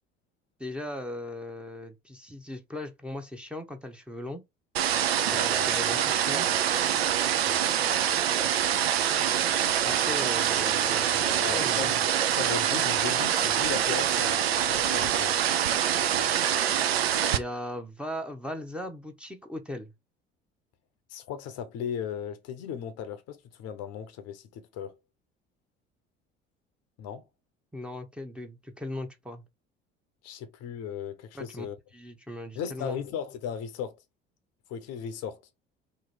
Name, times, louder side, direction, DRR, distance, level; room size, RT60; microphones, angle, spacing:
voice 1, 0.6-4.4 5.3-6.5 9.8-12.0 17.3-19.9 27.7-29.4 31.3-31.7 31.9-33.0, left 1 dB, 5° right, 0.8 m, -38 dB
sound 1, 4.7-17.4, right 10 dB, 85° right, 0.5 m, -25 dB
voice 2, 5.3-5.7 7.4-7.7 11.4-12.0 12.4-15.4 21.1-25.0 27.0-27.2 30.2-31.8 32.5-34.0 34.7-35.4, left 8 dB, 55° left, 0.7 m, -37 dB
3.0 x 2.5 x 4.1 m
hypercardioid pair, 60°, 30 cm